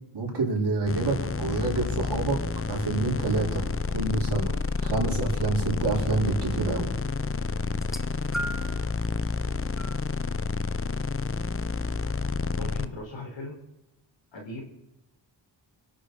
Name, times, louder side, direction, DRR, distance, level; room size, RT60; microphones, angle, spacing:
voice 1, 0.1-2.4 2.7-4.5 4.8-6.9, right 3 dB, 55° right, -2 dB, 5.5 m, -27 dB
sound 1, 0.9-12.9, left 4 dB, 25° left, 0.9 m, -29 dB
sound 2, 7.7-8.9 9.8-10.0 11.0-11.1, right 1 dB, ahead, 1.5 m, -35 dB
voice 2, 12.6-13.6 14.3-14.6, left 2 dB, 65° left, 1 dB, 4.4 m, -38 dB
24.0 x 8.8 x 5.3 m, 0.95 s
cardioid pair, 60°, 48 cm